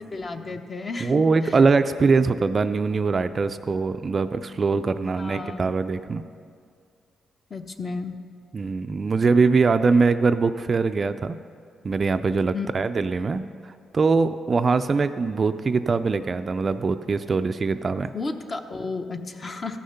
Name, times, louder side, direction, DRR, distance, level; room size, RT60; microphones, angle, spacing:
voice 1, 0.1-1.6 5.2-5.7 7.5-8.1 12.5-12.7 18.1-19.8, left 3 dB, 30° left, 7 dB, 0.7 m, -33 dB
voice 2, 1.0-6.2 8.5-11.4 11.8-13.4 13.9-18.1, right 4 dB, 35° right, 10 dB, 0.3 m, -22 dB
14.5 x 6.4 x 5.6 m, 2.2 s
cardioid pair, 125°, 0 cm